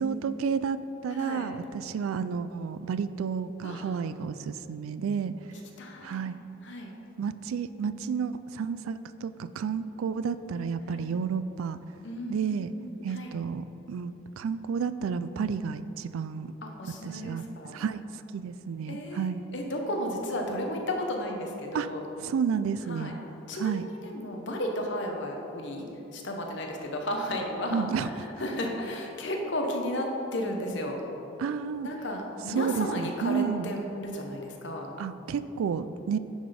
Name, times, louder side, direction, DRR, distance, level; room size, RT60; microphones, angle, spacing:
voice 1, 0.0-5.3 6.0-6.4 7.2-11.8 12.3-12.7 13.0-16.5 17.0-19.4 21.7-21.9 22.2-23.1 23.6-23.8 27.7-28.1 31.4-31.9 32.5-33.8 35.0-36.2, right 6 dB, 80° right, 14 dB, 0.3 m, -31 dB
voice 2, 1.1-1.5 3.6-4.0 5.8-6.3 6.6-6.9 10.9-11.1 12.0-13.3 16.6-17.8 18.9-22.0 22.9-23.2 23.5-25.8 26.1-31.0 31.8-34.9, left 1 dB, 60° left, 1 dB, 1.0 m, -34 dB
10.0 x 4.0 x 5.0 m, 3.0 s
head